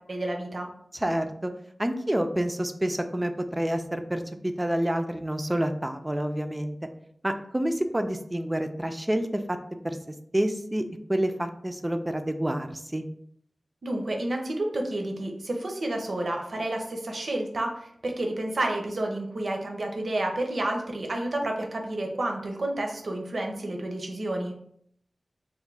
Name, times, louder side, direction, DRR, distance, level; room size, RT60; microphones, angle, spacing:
voice 1, 0.1-0.7 13.8-24.5, right 1 dB, 65° right, 2 dB, 0.6 m, -30 dB
voice 2, 0.9-1.5 1.8-6.8 7.2-9.6 9.8-10.0 10.3-13.0, right 1 dB, 15° right, 7 dB, 0.3 m, -28 dB
3.4 x 2.2 x 3.2 m, 0.68 s
wide cardioid pair, 90°, 0 cm